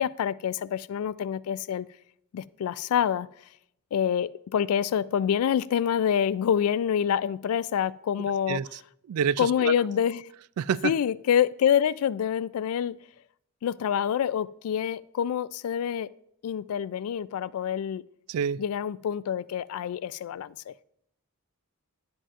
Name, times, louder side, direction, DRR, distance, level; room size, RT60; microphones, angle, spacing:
voice 1, 0.0-1.9 2.3-3.3 3.9-8.6 9.4-10.3 10.8-13.0 13.6-16.1 16.4-18.0 18.6-20.7, left 8 dB, 75° left, 0.3 m, -26 dB
voice 2, 9.1-9.7 10.6-10.9 18.3-18.6, right 7 dB, 85° right, 0.3 m, -27 dB
11.0 x 7.7 x 2.5 m
head